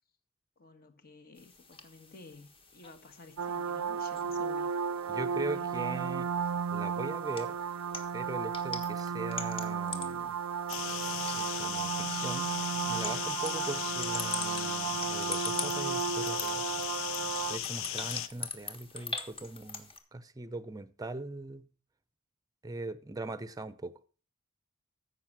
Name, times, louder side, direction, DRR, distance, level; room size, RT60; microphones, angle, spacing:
voice 1, 0.6-4.7 5.4-6.1, left 3 dB, 45° left, 1.4 m, -52 dB
sound 1, 1.4-20.0, left 3 dB, 25° left, 1.4 m, -44 dB
sound 2, 3.4-17.6, right 6 dB, 80° right, 0.5 m, -34 dB
voice 2, 5.1-6.3 6.7-7.6 8.1-10.4 11.3-12.5 12.9-16.6 17.5-21.7 22.6-23.9, right 2 dB, 15° right, 0.7 m, -40 dB
sound 3, 10.7-18.3, left 11 dB, 65° left, 0.6 m, -37 dB
14.5 x 5.6 x 6.1 m
head